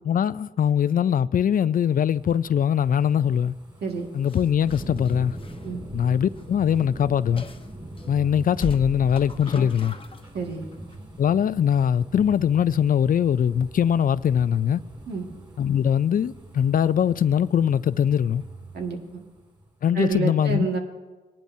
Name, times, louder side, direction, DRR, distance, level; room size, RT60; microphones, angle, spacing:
voice 1, 0.1-3.5 4.1-5.4 5.9-7.4 8.1-10.0 11.2-14.8 15.6-18.4 19.8-20.7, left 8 dB, 55° left, 0.4 m, -22 dB
sound 1, 1.5-19.7 20.1-20.2, right 1 dB, 25° right, 3.6 m, -43 dB
sound 2, 4.2-6.5 6.8-6.9 7.4-8.1 8.5-10.4 10.7-10.9, left 2 dB, 30° left, 1.0 m, -38 dB
Organ, 8.0-19.0, right 4 dB, 50° right, 3.4 m, -49 dB
voice 2, 10.3-10.7 15.1-15.3 18.7-19.2 19.9-20.8, right 4 dB, 75° right, 1.9 m, -28 dB
21.0 x 10.5 x 2.7 m
cardioid pair, 65°, 17 cm